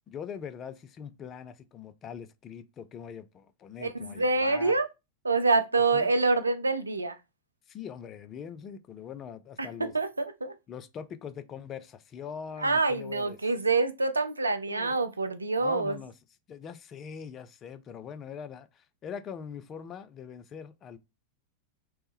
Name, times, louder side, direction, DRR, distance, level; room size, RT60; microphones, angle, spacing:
voice 1, 0.1-4.7 5.9-6.1 7.7-9.9 10.7-13.4 14.7-15.0 15.6-16.1 16.5-21.0, left 7 dB, 30° left, 0.3 m, -42 dB
voice 2, 3.8-4.9 5.2-7.2 9.6-10.5 12.6-16.0, right 3 dB, 80° right, 0.4 m, -26 dB
3.0 x 2.1 x 3.2 m
figure-of-eight pair, 90°, 0 cm